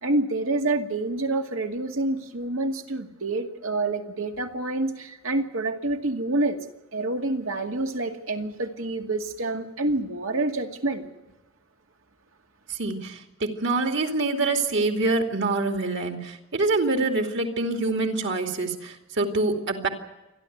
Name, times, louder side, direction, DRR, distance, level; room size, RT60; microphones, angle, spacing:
voice 1, 0.0-6.6 6.9-11.1, right 2 dB, 75° right, 4 dB, 2.2 m, -27 dB
voice 2, 12.7-19.9, right 3 dB, 60° right, 4 dB, 2.8 m, -25 dB
28.5 x 11.5 x 9.4 m, 1.0 s
head